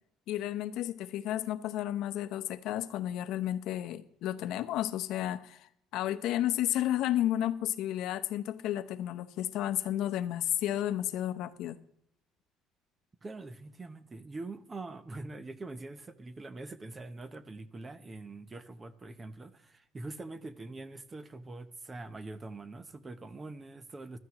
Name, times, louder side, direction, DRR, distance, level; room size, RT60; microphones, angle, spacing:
voice 1, 0.3-11.8, left 12 dB, 65° left, 0.8 m, -32 dB
voice 2, 13.2-24.2, right 2 dB, 20° right, 0.7 m, -44 dB
15.5 x 12.5 x 3.0 m
cardioid pair, 155°, 0 cm